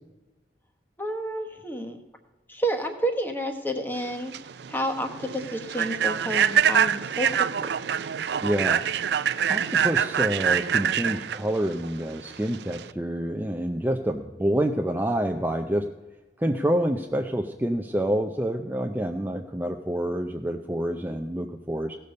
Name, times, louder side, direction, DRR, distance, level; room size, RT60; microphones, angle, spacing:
voice 1, 1.0-2.0 2.5-4.3 4.7-7.3 7.6-7.7, right 1 dB, 10° left, 5 dB, 1.2 m, -30 dB
Human voice / Train, 4.0-12.9, right 8 dB, 70° right, 0.4 m, -25 dB
voice 2, 8.4-8.8 9.2-15.9 16.4-22.0, right 1 dB, 10° right, 3 dB, 0.5 m, -27 dB
17.0 x 6.8 x 5.3 m, 1.1 s
head